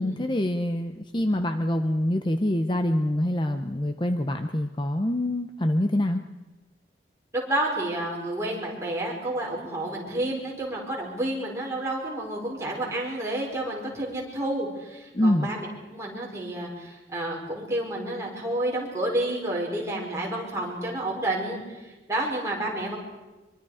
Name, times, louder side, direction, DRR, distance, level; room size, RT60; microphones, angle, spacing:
voice 1, 0.0-6.2 15.1-15.5, left 1 dB, 25° left, 7 dB, 0.8 m, -25 dB
voice 2, 7.3-21.6 22.1-23.0, right 1 dB, 15° right, -3 dB, 5.1 m, -30 dB
24.5 x 23.5 x 5.0 m, 1.1 s
head